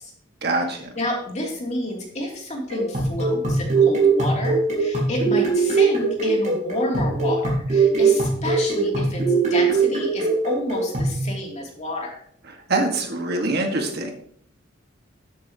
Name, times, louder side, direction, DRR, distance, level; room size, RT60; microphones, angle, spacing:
voice 1, 0.4-0.9 12.7-14.1, right 2 dB, 55° right, 3 dB, 1.9 m, -24 dB
voice 2, 0.9-9.2 9.5-12.1, left 1 dB, 35° left, -1 dB, 2.9 m, -30 dB
sound 1, 2.7-11.2, right 4 dB, 40° right, 4.4 m, -21 dB
13.0 x 8.2 x 3.0 m, 0.63 s
head